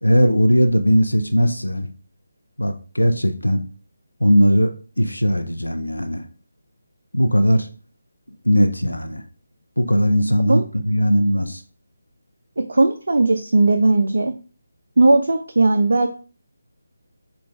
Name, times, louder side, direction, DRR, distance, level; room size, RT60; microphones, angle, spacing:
voice 1, 0.0-1.9 2.6-3.6 4.2-6.3 7.1-7.7 8.4-9.2 9.8-11.6, equal, 85° left, 5 dB, 0.5 m, -18 dB
voice 2, 12.6-14.3 15.0-16.1, right 2 dB, 60° right, 5 dB, 0.4 m, -17 dB
5.0 x 2.3 x 3.3 m, 0.37 s
figure-of-eight pair, 150°, 0 cm